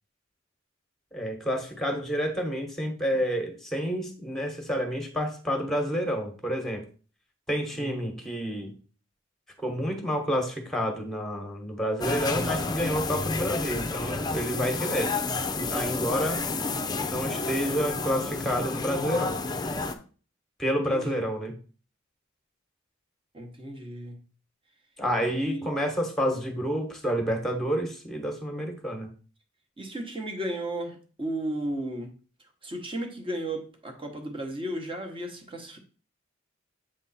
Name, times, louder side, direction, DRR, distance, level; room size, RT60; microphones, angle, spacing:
voice 1, 1.1-6.8 7.5-8.7 9.6-15.1 15.5-16.4 17.1-19.4 20.6-21.5 25.0-29.1, equal, ahead, 1.3 m, -29 dB
voice 2, 7.7-8.1 15.8-16.3 20.9-21.2 23.3-24.2 25.2-25.7 29.8-32.1 32.6-35.8, right 1 dB, 25° right, 1.1 m, -35 dB
sound 1, 12.0-20.0, left 3 dB, 20° left, 0.5 m, -30 dB
7.5 x 3.6 x 4.1 m
head